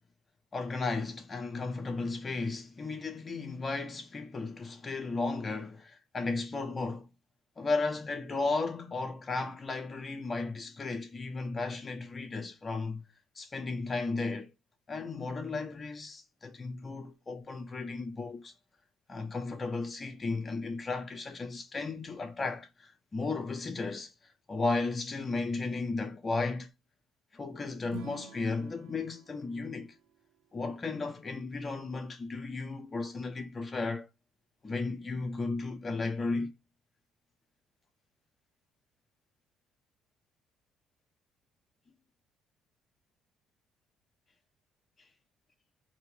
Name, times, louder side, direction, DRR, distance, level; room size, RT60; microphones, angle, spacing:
voice 1, 0.5-7.1 7.6-13.1 13.3-14.5 14.9-18.5 19.1-26.7 27.3-29.9 30.5-34.1 34.6-36.5, left 3 dB, 30° left, 1.2 m, -34 dB
Acoustic guitar / Strum, 27.9-31.2, right 6 dB, 75° right, 1.0 m, -51 dB
4.6 x 3.0 x 3.5 m
cardioid pair, 85°, 0 cm